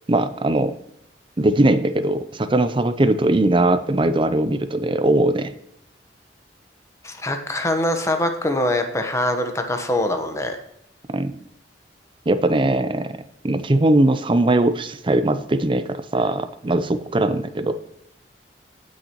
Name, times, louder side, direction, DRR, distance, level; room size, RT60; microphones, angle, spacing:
voice 1, 0.1-0.7 1.4-5.5 11.1-11.4 12.3-13.2 13.4-17.7, right 2 dB, 30° right, 11 dB, 0.6 m, -20 dB
voice 2, 7.0-10.6, left 1 dB, 15° left, 5 dB, 1.1 m, -23 dB
18.0 x 6.5 x 3.1 m, 0.78 s
head